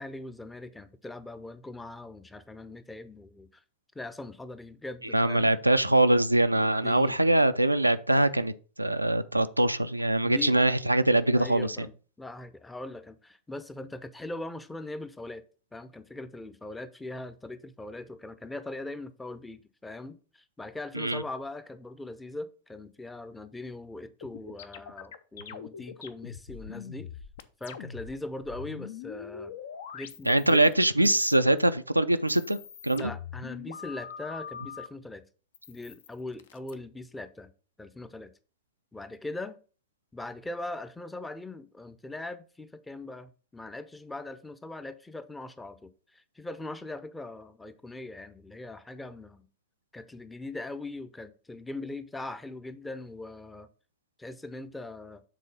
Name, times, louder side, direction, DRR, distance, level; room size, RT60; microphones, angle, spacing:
voice 1, 0.0-3.6 3.9-5.5 6.8-7.2 10.2-10.6 11.3-11.9 12.2-15.4 15.7-27.1 27.6-29.5 29.9-30.6 33.0-35.2 35.7-37.5 37.8-38.3 38.9-39.6 40.1-49.5 49.9-53.7 54.2-55.2, left 2 dB, 10° left, 0.6 m, -41 dB
voice 2, 5.1-8.5 8.8-11.9 20.9-21.2 30.3-32.6 32.8-33.1, right 1 dB, 85° right, 0.4 m, -23 dB
sound 1, 24.2-28.2 28.4-30.7 31.0-31.7 32.1-34.9 35.5-36.7, left 7 dB, 60° left, 0.6 m, -43 dB
7.4 x 3.8 x 5.3 m
figure-of-eight pair, 90°, 0 cm